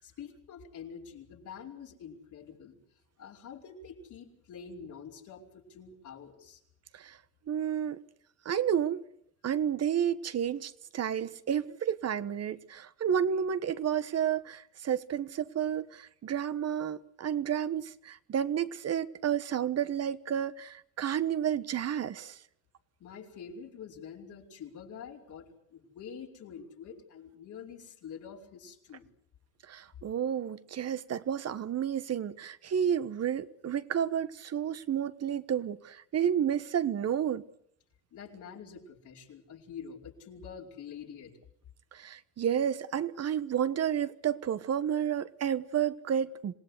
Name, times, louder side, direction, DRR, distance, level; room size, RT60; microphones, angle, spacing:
voice 1, 0.0-2.8 3.2-6.6 23.0-29.1 38.1-41.3, left 7 dB, 75° left, 5.0 m, -46 dB
voice 2, 7.5-8.0 8.4-9.0 9.4-22.4 29.7-37.4 41.9-46.5, right 9 dB, 55° right, 1.3 m, -31 dB
27.0 x 18.0 x 8.2 m
cardioid pair, 90°, 30 cm